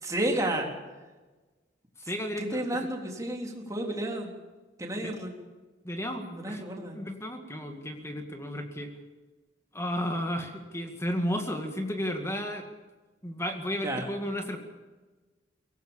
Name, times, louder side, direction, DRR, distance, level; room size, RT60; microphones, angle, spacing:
voice 1, 0.0-0.7 2.4-4.3 4.8-5.3 6.3-7.0 13.8-14.1, right 1 dB, 20° right, 0 dB, 3.6 m, -31 dB
voice 2, 2.0-2.6 5.0-5.1 5.8-8.9 9.7-12.7 13.2-14.6, equal, 15° left, 4 dB, 2.0 m, -33 dB
23.5 x 18.0 x 7.3 m, 1.2 s
head